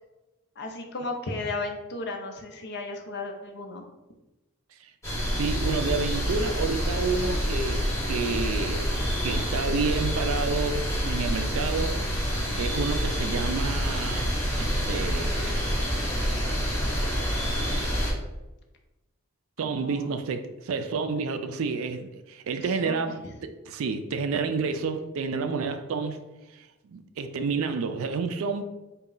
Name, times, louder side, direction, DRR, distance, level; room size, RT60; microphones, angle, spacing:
voice 1, 0.6-3.8 19.6-20.1 22.8-23.3, left 2 dB, 50° left, 3 dB, 0.6 m, -35 dB
sound 1, 5.0-18.1, equal, 15° left, 1.2 m, -27 dB
voice 2, 5.4-12.0 12.6-14.3 14.6-15.6 19.6-26.2 26.5-28.6, right 4 dB, 70° right, 8 dB, 0.4 m, -30 dB
4.0 x 2.3 x 3.8 m, 1.0 s
head